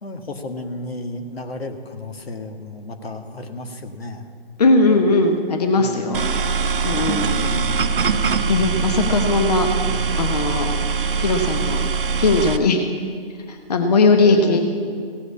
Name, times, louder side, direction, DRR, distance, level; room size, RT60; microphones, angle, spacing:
voice 1, 0.0-4.3 5.8-6.2 7.4-7.9 14.2-14.6, left 2 dB, 75° left, 6 dB, 1.6 m, -33 dB
voice 2, 4.6-6.3 6.8-7.5 8.2-9.7 10.2-10.7 11.1-11.8 12.2-12.8 13.5-14.6, left 3 dB, 40° left, 5 dB, 1.1 m, -19 dB
sound 1, 6.1-12.6, right 5 dB, 60° right, 0.9 m, -22 dB
16.5 x 7.9 x 8.5 m, 2.1 s
hypercardioid pair, 160°, 30 cm